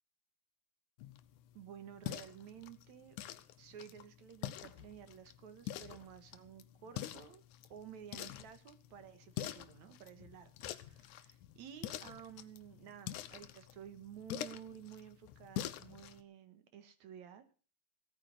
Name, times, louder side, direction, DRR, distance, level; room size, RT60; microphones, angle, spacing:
sound 1, 1.0-16.2, left 12 dB, 85° left, 2.3 m, -47 dB
voice 1, 1.5-3.2 3.6-7.4 7.7-17.4, right 9 dB, 70° right, 9 dB, 2.9 m, -53 dB
16.5 x 9.3 x 6.6 m, 0.38 s
omnidirectional pair, 3.4 m